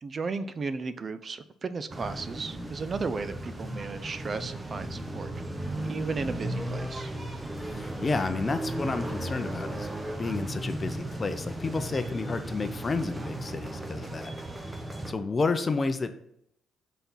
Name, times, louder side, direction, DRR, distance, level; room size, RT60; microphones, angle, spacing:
voice 1, 0.0-5.3 5.8-7.1, right 4 dB, 40° right, 12 dB, 0.4 m, -34 dB
sound 1, 1.9-15.1, right 1 dB, 15° right, 0.9 m, -36 dB
voice 2, 7.6-9.9 10.2-14.3 15.1-16.2, left 3 dB, 30° left, 10 dB, 0.6 m, -31 dB
5.8 x 4.2 x 5.5 m, 0.75 s
cardioid pair, 90°, 0 cm